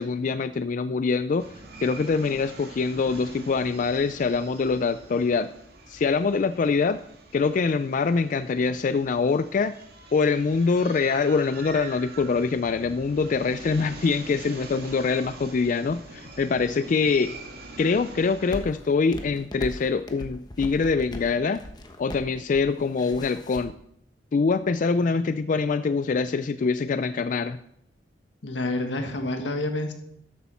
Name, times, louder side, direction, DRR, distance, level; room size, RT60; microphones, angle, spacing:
voice 1, 0.0-1.4 1.8-5.5 5.9-7.0 7.3-9.7 10.1-17.3 17.8-21.6 22.0-23.8 24.3-27.6, left 4 dB, 45° left, 11 dB, 0.3 m, -24 dB
sound 1, 1.4-18.6, right 2 dB, 60° right, 2.0 m, -44 dB
sound 2, 18.5-23.6, left 1 dB, 25° left, 1.1 m, -38 dB
voice 2, 28.4-29.9, left 2 dB, 90° left, 5 dB, 1.7 m, -28 dB
12.5 x 8.5 x 4.3 m, 0.73 s
head